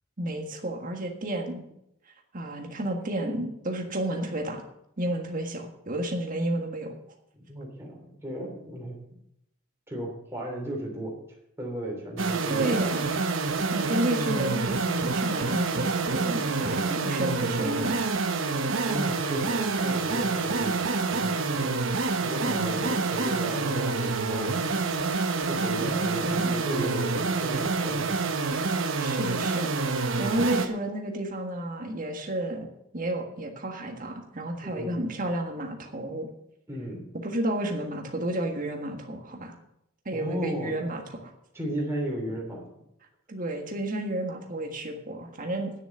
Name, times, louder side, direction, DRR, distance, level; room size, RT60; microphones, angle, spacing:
voice 1, 0.2-1.6 2.3-4.6 5.0-6.9 12.5-13.2 13.7-18.1 22.4-22.9 25.8-26.6 29.0-29.7 30.2-32.7 32.9-36.3 37.2-39.5 40.0-41.3 43.3-45.7, right 1 dB, 40° right, 2 dB, 1.7 m, -31 dB
voice 2, 7.3-9.0 9.9-11.2 11.6-12.9 13.5-13.6 18.9-21.7 22.2-24.9 25.5-28.2 34.6-35.0 36.7-37.0 40.1-40.9 41.5-42.7, right 1 dB, 10° right, -2 dB, 3.2 m, -35 dB
sound 1, 12.2-30.7, right 3 dB, 65° right, 1.0 m, -27 dB
9.6 x 7.1 x 8.8 m, 0.79 s
head